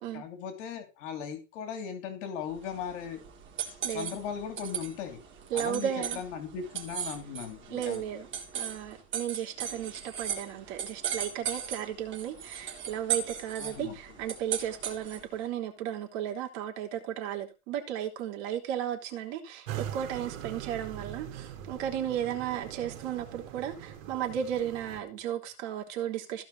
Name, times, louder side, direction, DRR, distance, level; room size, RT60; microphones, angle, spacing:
voice 1, 0.1-3.2 3.8-5.2 5.5-8.0 13.6-14.0, left 7 dB, 65° left, 3.1 m, -38 dB
sound 1, 2.5-15.4, right 8 dB, 30° right, 3.4 m, -38 dB
voice 2, 5.5-6.2 7.7-8.3 8.5-26.4, right 10 dB, 55° right, 3.4 m, -34 dB
sound 2, 19.7-25.0, right 10 dB, 75° right, 3.1 m, -42 dB
15.5 x 5.3 x 5.5 m
supercardioid pair, 150°, 39 cm